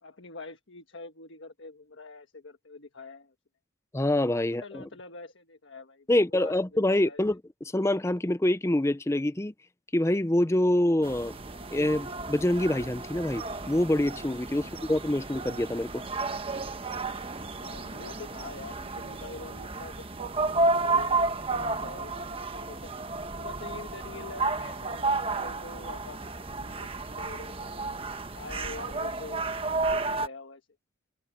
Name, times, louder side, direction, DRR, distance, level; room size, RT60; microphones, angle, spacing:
voice 1, 0.0-3.3 4.4-6.1 6.3-7.2 14.6-14.8 17.5-22.9 23.4-26.2 26.5-28.0 28.3-30.7, left 3 dB, 75° left, 1.4 m, -45 dB
voice 2, 3.9-4.8 6.1-7.4 7.7-9.5 9.9-11.4 11.7-15.9, left 1 dB, 15° left, 0.5 m, -26 dB
sound 1, 11.0-30.3, right 3 dB, 30° right, 1.2 m, -32 dB
head